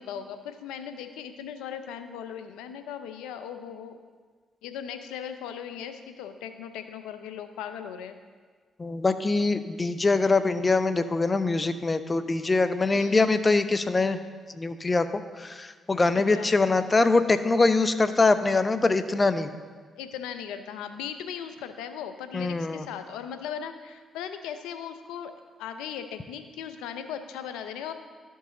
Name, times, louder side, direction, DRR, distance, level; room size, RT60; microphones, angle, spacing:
voice 1, 0.0-4.0 4.6-8.2 12.9-13.2 16.3-16.5 20.0-25.3 25.6-27.9, left 8 dB, 85° left, 9 dB, 0.5 m, -38 dB
voice 2, 8.8-14.2 14.5-19.5 22.3-22.9, left 3 dB, 30° left, 11 dB, 0.6 m, -23 dB
12.5 x 5.4 x 3.8 m, 1.5 s
supercardioid pair, 50°, 0 cm